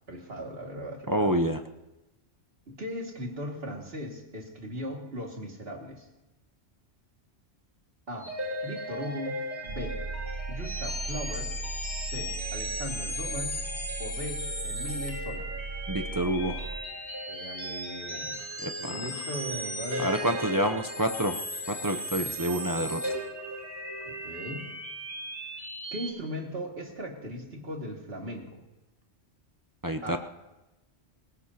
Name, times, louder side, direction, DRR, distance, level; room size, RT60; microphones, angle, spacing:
voice 1, 0.1-1.4 2.7-6.1 8.1-8.3 8.6-10.0 10.5-11.5 12.0-13.6 14.0-15.5 17.3-18.4 18.8-20.1 24.1-24.7 25.9-28.6 30.0-30.2, equal, 55° right, 0 dB, 2.4 m, -38 dB
voice 2, 1.1-1.6 15.9-16.7 18.6-18.9 20.0-21.4 21.7-23.0 29.8-30.2, right 1 dB, 25° right, 5 dB, 0.5 m, -28 dB
sound 1, 8.2-26.1, equal, 25° left, 3.3 m, -36 dB
sound 2, 9.7-16.8, right 3 dB, 80° right, 1.6 m, -38 dB
26.0 x 17.0 x 2.8 m, 1.0 s
omnidirectional pair, 1.2 m